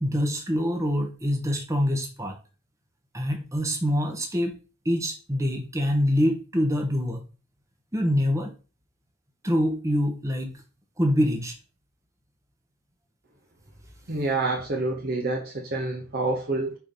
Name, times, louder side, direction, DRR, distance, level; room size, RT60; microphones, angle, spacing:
voice 1, 0.0-2.4 3.1-4.6 4.8-7.3 7.9-8.5 9.4-10.5 11.0-11.6, equal, 15° right, 3 dB, 1.0 m, -25 dB
voice 2, 14.1-16.7, right 2 dB, 40° right, 0 dB, 0.9 m, -27 dB
4.6 x 4.1 x 5.3 m, 0.34 s
head